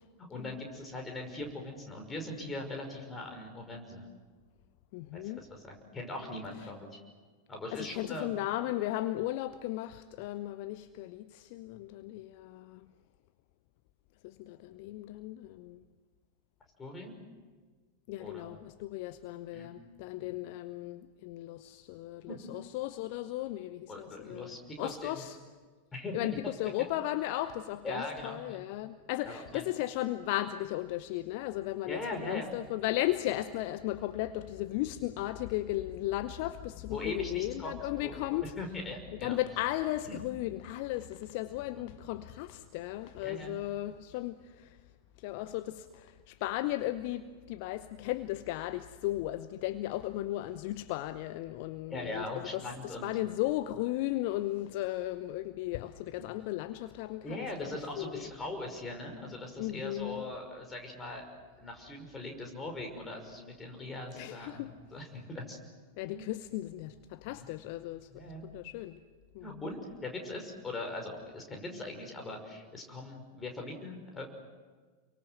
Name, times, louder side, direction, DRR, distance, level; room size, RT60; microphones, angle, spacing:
voice 1, 0.3-4.1 5.1-7.0 7.5-8.3 16.8-17.2 18.2-18.6 19.5-19.7 20.2-20.3 22.2-22.4 23.9-25.2 25.9-26.1 27.8-28.6 29.2-29.7 31.9-32.5 36.9-38.1 38.6-39.4 40.0-40.2 41.8-41.9 43.2-43.6 51.9-53.1 56.2-56.3 57.2-61.3 61.6-65.6 66.1-66.3 67.3-67.5 68.1-68.5 69.4-74.3, left 2 dB, 15° left, 5.7 m, -41 dB
voice 2, 4.9-5.4 7.7-12.9 14.2-15.8 18.1-25.4 26.1-38.5 39.2-44.8 45.2-57.7 58.0-58.2 59.6-60.3 64.1-64.7 66.0-68.2 68.5-69.0 69.3-69.5, left 15 dB, 45° left, 0.8 m, -36 dB
30.0 x 23.5 x 7.9 m
figure-of-eight pair, 90°, 0 cm